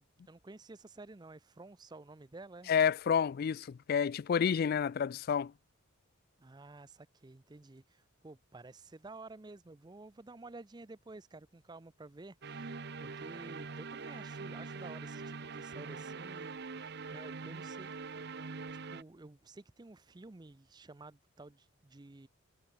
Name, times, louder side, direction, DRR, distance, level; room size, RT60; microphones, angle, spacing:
voice 1, 0.0-2.7 6.4-18.3 18.7-22.3, right 2 dB, 20° right, 0.5 m, -52 dB
voice 2, 2.7-5.5, left 7 dB, 45° left, 0.3 m, -29 dB
sound 1, 12.4-19.0, right 4 dB, 50° right, 0.9 m, -43 dB
head